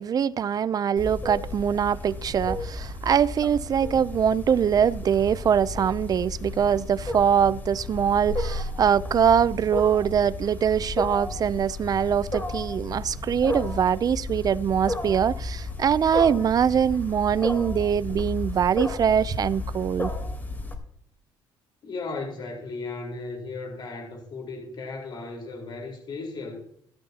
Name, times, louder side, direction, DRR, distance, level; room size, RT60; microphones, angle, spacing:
voice 1, 0.0-20.1, right 8 dB, 40° right, 0.5 m, -23 dB
Wild animals, 1.0-20.7, left 2 dB, 20° left, 3.5 m, -33 dB
voice 2, 21.8-26.6, left 3 dB, 50° left, 4.4 m, -36 dB
15.5 x 14.0 x 2.9 m
cardioid pair, 90°, 10 cm